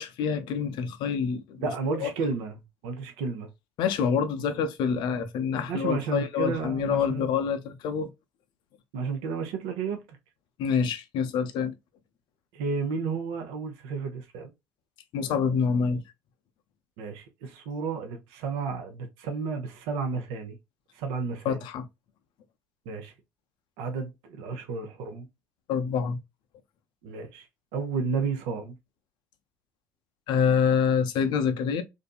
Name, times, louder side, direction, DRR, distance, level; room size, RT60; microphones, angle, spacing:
voice 1, 0.0-1.7 2.0-2.1 3.8-8.1 10.6-11.7 15.1-16.0 21.4-21.9 25.7-26.2 30.3-31.8, left 6 dB, 65° left, 0.5 m, -26 dB
voice 2, 1.6-3.5 5.7-7.3 8.9-10.0 12.5-14.5 17.0-20.6 20.9-21.6 22.9-23.1 23.8-25.3 27.0-27.5 27.7-28.8, right 5 dB, 75° right, 0.6 m, -32 dB
2.6 x 2.5 x 2.2 m
hypercardioid pair, 60°, 9 cm